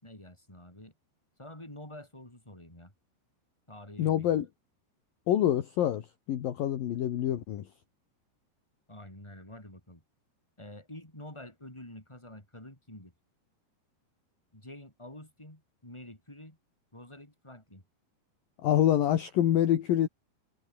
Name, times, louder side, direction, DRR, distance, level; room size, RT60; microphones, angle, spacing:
voice 1, 0.0-0.9 1.4-2.9 3.7-4.4 8.9-10.0 10.6-13.1 14.5-16.6 16.9-17.8, left 1 dB, 5° left, 6.4 m, -48 dB
voice 2, 4.0-4.5 5.3-7.7 18.6-20.1, left 11 dB, 60° left, 3.1 m, -26 dB
omnidirectional pair, 5.0 m